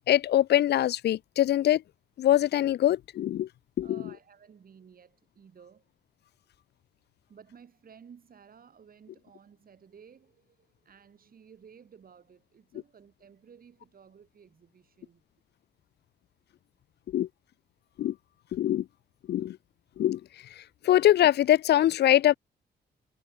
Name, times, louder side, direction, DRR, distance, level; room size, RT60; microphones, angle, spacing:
voice 1, 0.1-1.8 2.2-3.5 3.8-4.0 17.1-17.3 18.0-18.1 18.5-18.9 19.3-19.6 20.0-20.2 20.6-22.4, left 12 dB, 70° left, 0.4 m, -23 dB
voice 2, 3.8-5.8 7.3-15.2, right 7 dB, 55° right, 6.2 m, -55 dB
cardioid pair, 105°, 18 cm